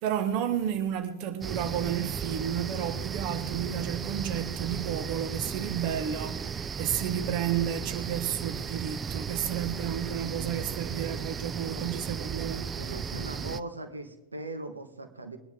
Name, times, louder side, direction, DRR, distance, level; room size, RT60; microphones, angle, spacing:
voice 1, 0.0-12.9, right 9 dB, 45° right, 1.4 m, -32 dB
sound 1, 1.4-13.6, right 6 dB, 20° right, 0.5 m, -35 dB
voice 2, 12.7-15.4, right 2 dB, 80° right, 1.4 m, -39 dB
21.5 x 10.5 x 3.7 m
figure-of-eight pair, 90°, 0 cm